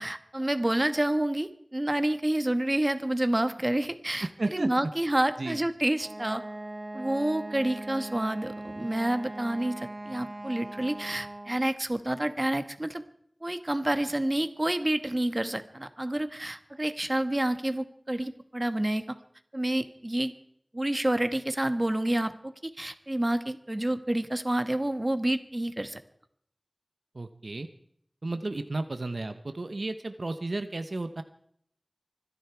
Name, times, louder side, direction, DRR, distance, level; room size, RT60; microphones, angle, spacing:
voice 1, 0.0-6.4 6.9-13.0 13.4-19.0 19.5-20.3 20.7-26.0, right 1 dB, 35° right, 10 dB, 1.3 m, -29 dB
voice 2, 4.2-4.9 5.4-5.6 27.1-27.7 28.2-31.2, right 2 dB, 85° right, 9 dB, 0.9 m, -33 dB
Wind instrument woodwind instrument, 6.0-11.7, right 1 dB, 50° right, 1.2 m, -40 dB
25.5 x 10.5 x 4.7 m, 0.66 s
wide cardioid pair, 45°, 0 cm